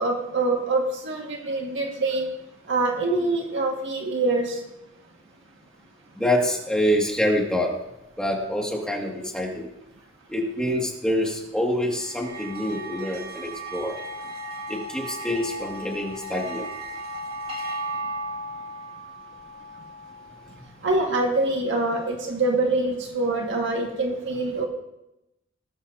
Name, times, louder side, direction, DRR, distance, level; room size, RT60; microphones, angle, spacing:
voice 1, 0.0-2.3 2.7-4.6 20.8-24.7, right 2 dB, 65° right, 0 dB, 1.9 m, -25 dB
voice 2, 6.2-7.7 8.2-9.7 10.3-14.0 14.7-16.7, equal, 5° left, -2 dB, 2.3 m, -26 dB
sound 1, 11.9-20.5, right 1 dB, 30° right, 2.3 m, -36 dB
19.0 x 12.5 x 2.8 m, 0.90 s
head